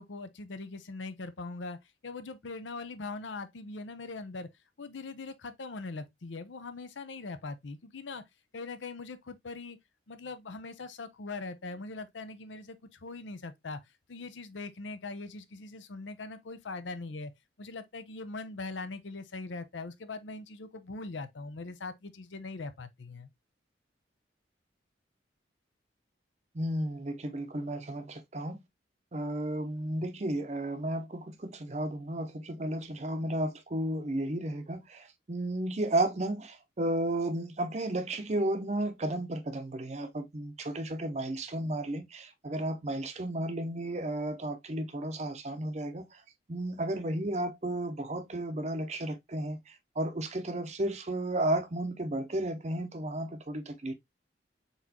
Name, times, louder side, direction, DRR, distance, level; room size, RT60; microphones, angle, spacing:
voice 1, 0.0-4.5 4.8-8.2 8.5-9.8 10.1-13.8 14.1-17.3 17.6-23.3, left 3 dB, 85° left, 0.6 m, -41 dB
voice 2, 26.5-28.6 29.1-46.2 46.5-53.9, right 1 dB, 35° right, 0.6 m, -33 dB
4.1 x 3.7 x 2.8 m
head